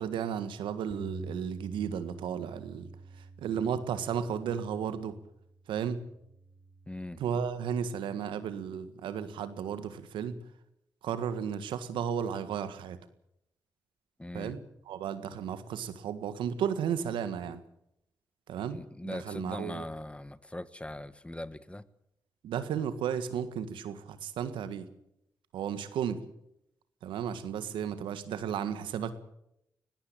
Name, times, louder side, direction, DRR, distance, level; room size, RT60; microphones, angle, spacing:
voice 1, 0.0-2.9 3.2-5.2 5.7-6.0 7.2-10.4 11.0-13.0 14.3-17.6 18.5-19.8 22.4-24.9 25.5-26.2 27.0-29.1, right 8 dB, 80° right, 12 dB, 1.7 m, -34 dB
Bass guitar, 0.9-5.4 6.0-7.1, right 3 dB, ahead, 5.9 m, -46 dB
voice 2, 6.9-7.2 14.2-14.5 18.7-21.8, left 1 dB, 15° left, 15 dB, 1.5 m, -40 dB
20.0 x 17.0 x 8.8 m, 0.78 s
supercardioid pair, 45°, 8 cm